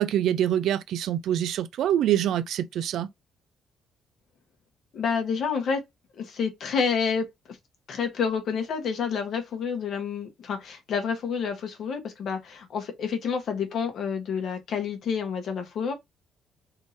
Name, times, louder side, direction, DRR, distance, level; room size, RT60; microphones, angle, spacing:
voice 1, 0.0-3.1, right 11 dB, 80° right, 0.3 m, -25 dB
voice 2, 4.9-5.8 6.2-7.6 7.9-15.9, left 6 dB, 65° left, 1.1 m, -29 dB
3.5 x 2.7 x 3.1 m
cardioid pair, 90°, 0 cm